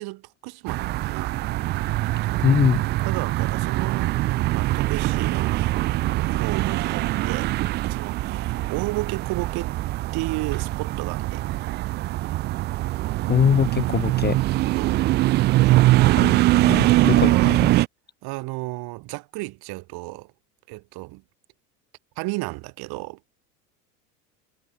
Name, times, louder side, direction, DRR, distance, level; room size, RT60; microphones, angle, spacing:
voice 1, 0.0-1.4 2.0-2.5 3.0-5.7 6.1-9.7 10.1-11.6 14.7-15.1 15.5-16.4 16.8-17.5 18.2-20.3 20.7-21.2 22.2-23.2, right 23 dB, 50° right, 2.9 m, -33 dB
sound 1, 0.7-17.9, right 17 dB, 25° right, 0.3 m, -22 dB
voice 2, 2.4-2.8 13.3-14.4 16.2-16.3 16.6-17.7, left 8 dB, 20° left, 1.0 m, -22 dB
hypercardioid pair, 80°, 47 cm